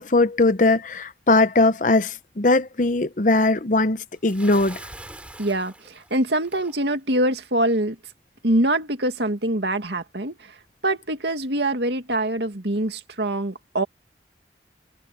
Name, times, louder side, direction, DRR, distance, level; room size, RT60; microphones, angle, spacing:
voice 1, 0.0-4.8, left 2 dB, 45° left, 0.8 m, -20 dB
Bathtub (filling or washing) / Splash splatter, 4.3-6.8, right 1 dB, 5° right, 2.8 m, -42 dB
voice 2, 5.4-8.0 8.4-10.5 10.8-13.8, right 1 dB, 70° right, 2.4 m, -24 dB
head